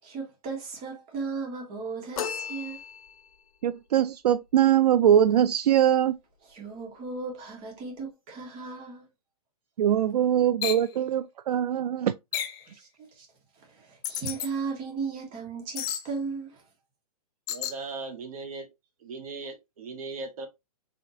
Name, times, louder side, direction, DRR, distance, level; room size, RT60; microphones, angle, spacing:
voice 1, 0.0-2.8 6.5-9.1 12.7-13.3 13.6-16.6, right 4 dB, 30° right, 2.0 m, -36 dB
sound 1, 2.2-3.4, left 8 dB, 65° left, 0.7 m, -35 dB
voice 2, 3.6-6.1 9.8-12.1, right 10 dB, 80° right, 0.4 m, -22 dB
sound 2, 10.6-10.9 12.3-12.6 14.0-14.5 15.7-16.1 17.5-17.8, left 10 dB, 20° left, 0.4 m, -31 dB
voice 3, 17.5-18.7 19.0-20.5, right 3 dB, 65° right, 1.7 m, -38 dB
4.2 x 3.5 x 2.8 m
hypercardioid pair, 145°, 20 cm